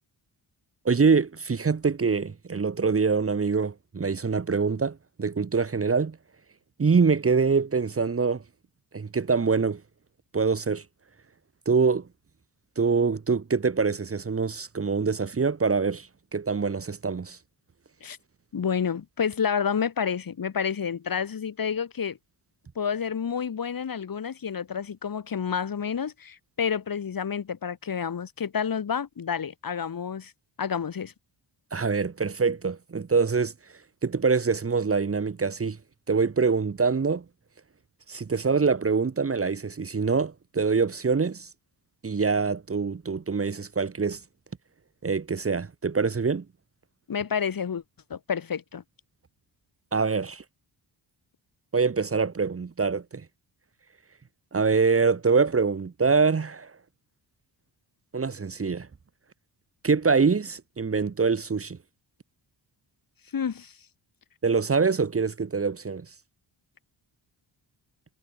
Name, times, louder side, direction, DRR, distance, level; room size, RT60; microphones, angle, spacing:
voice 1, 0.9-6.2 6.8-8.4 8.9-9.8 10.3-10.8 11.7-12.1 12.8-16.1 16.3-17.4 31.7-33.5 34.0-35.8 36.1-37.2 38.1-41.5 42.0-44.2 45.0-46.4 49.9-50.4 51.7-53.2 54.5-56.7 58.1-58.9 59.8-61.8 64.4-66.1, right 5 dB, 30° right, 1.8 m, -24 dB
voice 2, 18.5-22.2 22.7-30.3 30.6-31.1 47.1-47.8 48.1-48.8 63.3-63.7, left 7 dB, 50° left, 3.3 m, -29 dB
wide cardioid pair, 140°, 45 cm